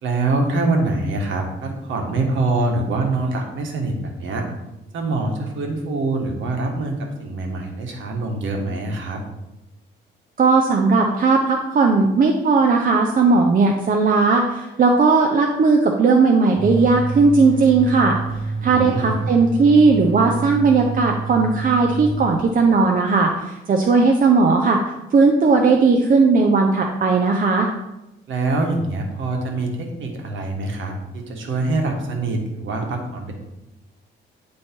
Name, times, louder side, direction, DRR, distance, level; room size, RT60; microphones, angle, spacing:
voice 1, 0.0-4.5 4.9-9.2 18.6-19.2 23.9-24.0 28.3-33.3, right 2 dB, 75° right, 2 dB, 1.4 m, -24 dB
voice 2, 10.4-18.2 18.6-24.8 25.1-27.7, right 4 dB, 45° right, 2 dB, 0.7 m, -17 dB
sound 1, 16.6-22.7, right 3 dB, 25° left, 1.6 m, -28 dB
9.4 x 3.2 x 4.4 m, 0.96 s
cardioid pair, 90°, 20 cm